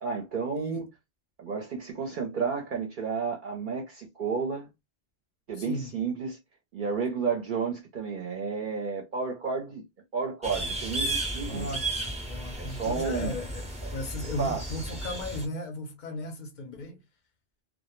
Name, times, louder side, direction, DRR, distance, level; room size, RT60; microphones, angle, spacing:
voice 1, 0.0-0.9 1.4-4.7 5.5-6.4 6.7-9.8 10.1-11.7 12.6-13.4 14.4-14.7, right 5 dB, 60° right, 0.6 m, -31 dB
voice 2, 0.6-0.9 5.6-6.0 11.4-17.0, left 1 dB, 55° left, 0.6 m, -36 dB
sound 1, 10.4-15.5, right 2 dB, 10° right, 0.4 m, -34 dB
2.1 x 2.0 x 2.9 m
omnidirectional pair, 1.1 m